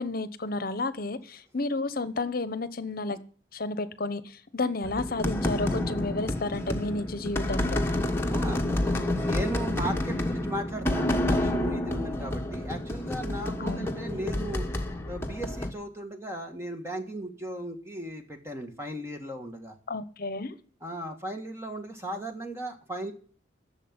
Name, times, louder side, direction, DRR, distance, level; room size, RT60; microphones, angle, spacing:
voice 1, 0.0-3.2 3.5-7.8 13.6-13.9 19.9-20.6, left 2 dB, 50° left, 14 dB, 1.0 m, -31 dB
sound 1, 4.8-15.7, left 1 dB, 15° left, 1.3 m, -29 dB
voice 2, 8.3-14.7 15.1-19.8 20.8-23.1, right 1 dB, 15° right, 4 dB, 1.7 m, -36 dB
11.5 x 7.2 x 9.8 m, 0.43 s
head